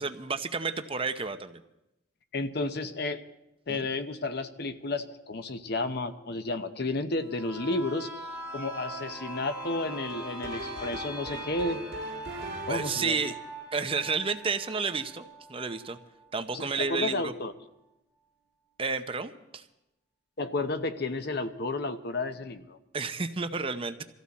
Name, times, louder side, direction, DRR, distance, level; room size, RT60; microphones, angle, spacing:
voice 1, 0.0-1.6 3.7-3.9 12.7-13.3 13.7-16.0 16.3-17.3 18.8-19.6 22.9-24.0, right 4 dB, 30° right, 8 dB, 0.7 m, -31 dB
voice 2, 2.3-3.2 3.7-8.1 8.5-11.8 12.6-13.2 16.5-17.5 20.4-22.8, left 2 dB, 55° left, 9 dB, 0.9 m, -32 dB
sound 1, 7.2-16.8 17.2-17.3, right 2 dB, 5° right, 4.1 m, -42 dB
sound 2, 9.8-13.1, right 1 dB, 55° right, 1.7 m, -40 dB
24.0 x 14.5 x 4.2 m, 0.88 s
head